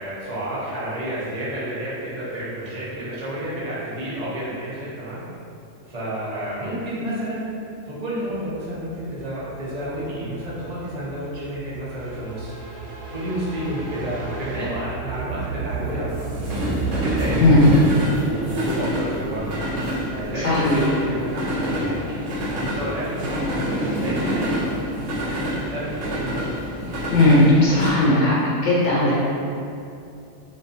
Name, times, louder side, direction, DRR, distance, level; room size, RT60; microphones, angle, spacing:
voice 1, 0.0-5.2 5.9-7.5 7.8-12.5 13.1-17.9 18.2-19.6 20.0-26.3, right 1 dB, 40° right, -9 dB, 0.7 m, -30 dB
sound 1, 8.4-27.9, right 1 dB, 80° right, 1.1 m, -28 dB
voice 2, 20.4-20.8 27.1-28.3 28.6-29.1, left 2 dB, 80° left, -7 dB, 0.9 m, -16 dB
2.6 x 2.3 x 2.4 m, 2.6 s
omnidirectional pair, 1.3 m